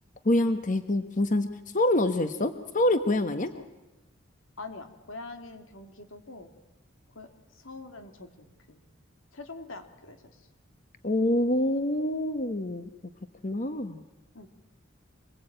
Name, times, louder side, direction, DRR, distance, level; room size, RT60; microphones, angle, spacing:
voice 1, 0.2-1.5 1.7-3.5 11.0-12.9 13.4-14.0, left 1 dB, 40° left, 9 dB, 1.2 m, -26 dB
voice 2, 4.6-6.5 7.1-8.8 9.3-10.5 14.3-14.5, left 3 dB, 85° left, 7 dB, 2.9 m, -44 dB
26.0 x 21.5 x 8.9 m, 0.99 s
head